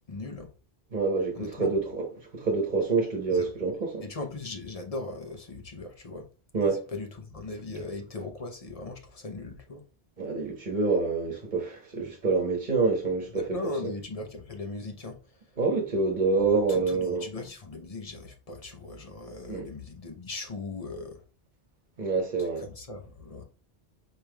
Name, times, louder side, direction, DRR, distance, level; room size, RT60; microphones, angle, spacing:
voice 1, 0.1-0.5 1.4-1.8 3.3-3.5 4.0-6.3 6.9-9.8 13.3-15.2 16.4-21.2 22.4-23.4, left 3 dB, 40° left, 0.8 m, -39 dB
voice 2, 0.9-2.1 2.3-4.0 6.5-6.8 10.2-13.6 13.8-13.9 15.6-17.3 19.5-19.7 22.0-22.6, right 4 dB, 45° right, 1.1 m, -27 dB
4.6 x 3.3 x 2.2 m
omnidirectional pair, 1.1 m